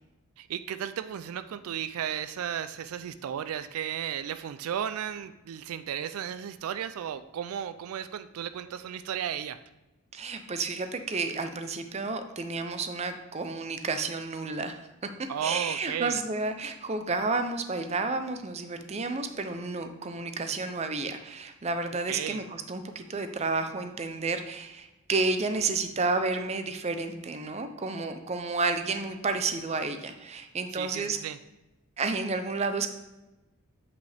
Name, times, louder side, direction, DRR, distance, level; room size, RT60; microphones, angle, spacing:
voice 1, 0.4-9.6 15.3-16.2 22.1-22.4 30.7-31.4, right 9 dB, 85° right, 13 dB, 0.3 m, -34 dB
voice 2, 10.1-14.8 15.4-31.2 32.0-32.9, right 3 dB, 30° right, 8 dB, 0.5 m, -31 dB
7.9 x 5.4 x 3.4 m, 1.0 s
head